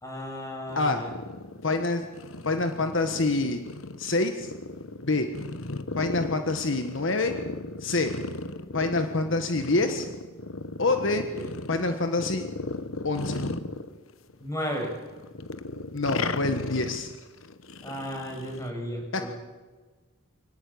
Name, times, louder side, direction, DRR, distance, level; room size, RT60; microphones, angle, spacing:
voice 1, 0.0-1.1 11.3-11.5 14.4-14.9 17.8-19.3, equal, 15° left, 2 dB, 6.4 m, -34 dB
sound 1, 0.7-14.5 14.7-18.7, left 3 dB, 85° left, 1.2 m, -36 dB
voice 2, 1.6-2.0 2.4-3.6 4.0-4.5 5.0-5.3 6.0-7.4 7.8-8.1 8.7-10.1 10.8-11.2 11.7-12.4 13.0-13.4 15.9-17.1 19.1-19.3, left 2 dB, 65° left, 6 dB, 1.5 m, -26 dB
24.0 x 18.5 x 8.7 m, 1.3 s
head